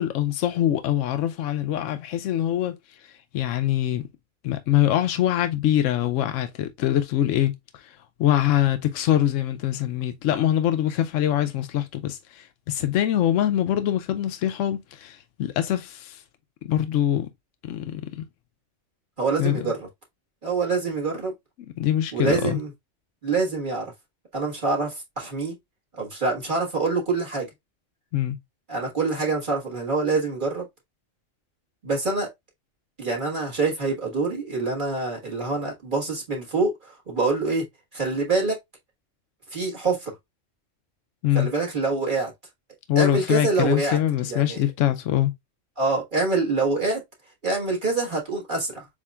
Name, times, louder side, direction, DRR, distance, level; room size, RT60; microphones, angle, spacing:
voice 1, 0.0-2.8 3.0-4.0 4.4-16.2 16.6-17.3 17.6-18.2 19.4-19.5 21.8-22.6 28.1-28.4 41.2-41.5 42.9-45.3, left 12 dB, 85° left, 0.9 m, -24 dB
voice 2, 19.2-19.9 20.4-21.3 22.1-22.7 23.2-23.9 24.3-25.5 25.9-27.5 28.7-30.6 31.8-32.3 33.0-37.6 37.9-38.6 39.5-40.1 41.3-42.3 42.9-44.0 44.3-44.6 45.8-47.0 47.4-48.9, right 3 dB, 40° right, 1.6 m, -25 dB
7.3 x 2.4 x 2.3 m
omnidirectional pair, 1.3 m